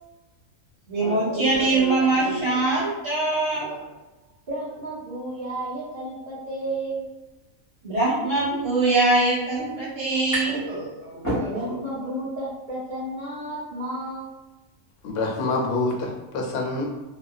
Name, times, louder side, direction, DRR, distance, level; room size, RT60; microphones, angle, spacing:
voice 1, 0.9-3.8 7.8-11.8, right 2 dB, 60° right, -7 dB, 1.4 m, -23 dB
voice 2, 4.5-7.1 11.5-14.3, right 1 dB, 40° right, -14 dB, 1.0 m, -32 dB
sound 1, 10.3-10.7 11.0-12.0, right 1 dB, 15° left, 0.8 m, -30 dB
voice 3, 15.0-16.9, left 3 dB, 60° left, -1 dB, 0.7 m, -26 dB
2.5 x 2.4 x 2.3 m, 1.1 s
omnidirectional pair, 1.5 m